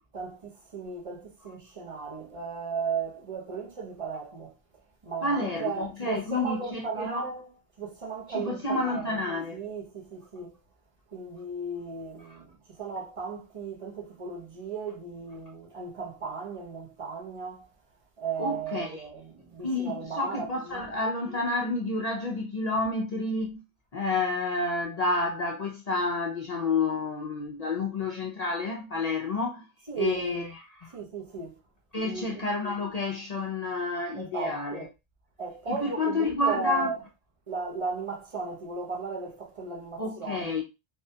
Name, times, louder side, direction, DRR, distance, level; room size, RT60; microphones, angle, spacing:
voice 1, 0.1-4.5 5.0-7.5 7.8-9.2 9.5-10.6 11.1-17.7 18.2-20.9 29.9-30.5 30.9-31.6 32.0-32.5 34.2-34.9 35.4-37.0 37.5-40.5, right 4 dB, 35° right, 0.7 m, -35 dB
voice 2, 5.2-7.3 8.3-9.6 18.4-19.1 19.6-23.6 23.9-29.7 30.0-31.0 31.9-34.9 35.7-36.9 40.0-40.6, left 3 dB, 55° left, 0.4 m, -30 dB
3.4 x 2.2 x 2.7 m
omnidirectional pair, 1.1 m